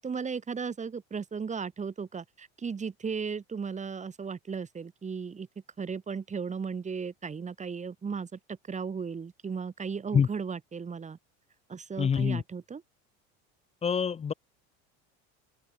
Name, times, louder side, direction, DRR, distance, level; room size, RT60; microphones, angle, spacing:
voice 1, 0.0-5.5 5.8-11.2 11.7-12.8, right 5 dB, 20° right, 1.8 m, -36 dB
voice 2, 12.0-12.4 13.8-14.3, left 7 dB, 20° left, 0.6 m, -25 dB
open air
supercardioid pair, 105°, 34 cm